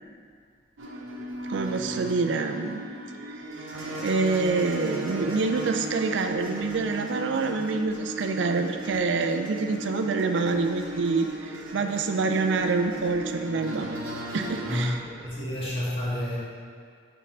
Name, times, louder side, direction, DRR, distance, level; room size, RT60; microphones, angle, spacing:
sound 1, 0.8-14.8, right 1 dB, 90° right, 0.9 m, -36 dB
voice 1, 1.5-2.8 3.3-3.7 4.0-13.9 14.3-15.0, right 4 dB, 65° right, 6 dB, 0.4 m, -27 dB
voice 2, 14.7-16.4, left 1 dB, 30° left, -8 dB, 1.8 m, -30 dB
7.0 x 3.6 x 6.0 m, 2.1 s
head